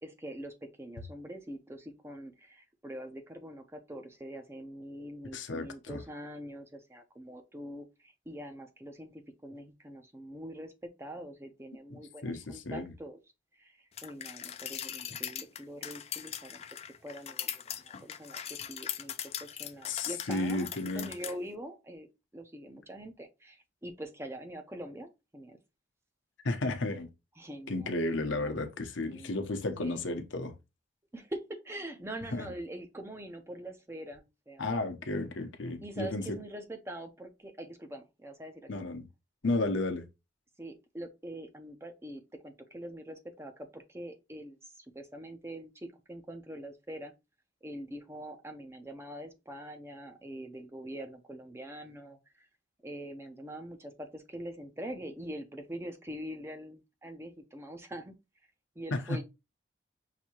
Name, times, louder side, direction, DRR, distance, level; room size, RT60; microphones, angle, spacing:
voice 1, 0.0-13.2 13.5-16.6 17.0-22.1 22.3-25.6 27.4-28.6 29.0-29.3 29.8-30.0 31.1-34.7 35.8-38.8 40.6-47.1 47.6-52.5 52.8-58.1 58.8-59.2, right 1 dB, 15° right, 0.5 m, -44 dB
voice 2, 5.3-6.0 12.2-12.8 19.9-21.1 26.4-27.1 27.7-30.5 32.3-32.5 34.6-36.4 38.7-39.0 39.4-40.0 58.9-59.2, left 2 dB, 85° left, 0.8 m, -33 dB
sound 1, 14.0-21.3, left 10 dB, 35° left, 0.4 m, -40 dB
5.8 x 2.7 x 2.9 m
head